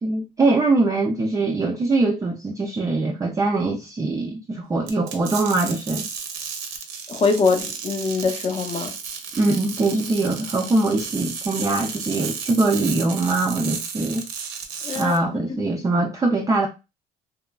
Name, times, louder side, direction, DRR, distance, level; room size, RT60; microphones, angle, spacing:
voice 1, 0.0-6.1 9.4-14.2 14.9-16.7, right 2 dB, 20° right, 0.3 m, -22 dB
sound 1, 4.9-15.2, right 6 dB, 85° right, 0.7 m, -33 dB
voice 2, 7.1-8.9 14.8-15.1 15.5-15.6, left 4 dB, 35° left, 0.6 m, -23 dB
2.9 x 2.3 x 2.2 m
cardioid pair, 110°, 17 cm